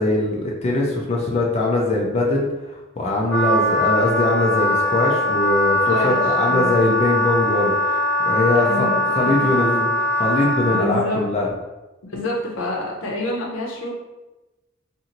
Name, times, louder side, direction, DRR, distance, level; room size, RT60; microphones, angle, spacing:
voice 1, 0.0-11.5, left 2 dB, 30° left, -2 dB, 0.4 m, -22 dB
Wind instrument woodwind instrument, 3.3-10.9, left 1 dB, 10° left, 0.8 m, -21 dB
voice 2, 5.9-6.9 8.6-9.5 10.7-11.2 12.1-13.9, left 1 dB, 85° left, -1 dB, 0.7 m, -27 dB
2.6 x 2.5 x 2.8 m, 1.1 s
head